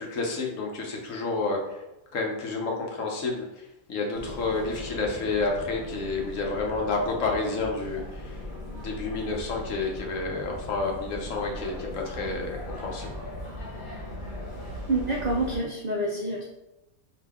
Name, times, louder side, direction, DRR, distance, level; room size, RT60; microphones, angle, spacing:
voice 1, 0.0-1.8 2.1-3.5 3.9-8.4 8.8-13.1, left 3 dB, 70° left, 0 dB, 1.1 m, -30 dB
sound 1, 4.1-15.6, left 1 dB, 85° left, 1.9 m, -39 dB
voice 2, 14.9-16.4, right 2 dB, 60° right, -2 dB, 0.4 m, -27 dB
4.7 x 2.6 x 3.5 m, 0.94 s
omnidirectional pair, 1.5 m